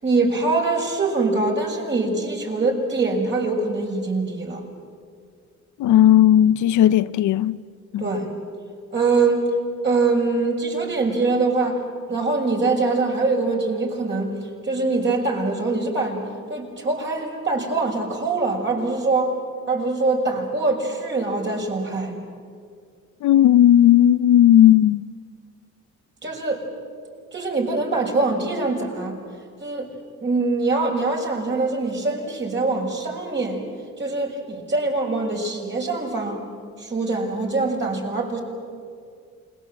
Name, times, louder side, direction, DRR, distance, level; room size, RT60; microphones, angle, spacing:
voice 1, 0.0-4.6 8.0-8.3 8.9-9.5 9.8-16.2 16.5-19.3 19.7-22.2 26.2-26.6 27.3-29.2 29.6-29.9 30.2-33.6 34.0-36.5 36.8-38.4, right 3 dB, 40° right, 6.1 m, -23 dB
voice 2, 5.8-7.6 7.9-8.0 23.2-25.0, left 11 dB, 75° left, 0.7 m, -15 dB
28.5 x 21.5 x 7.9 m
cardioid pair, 90°, 30 cm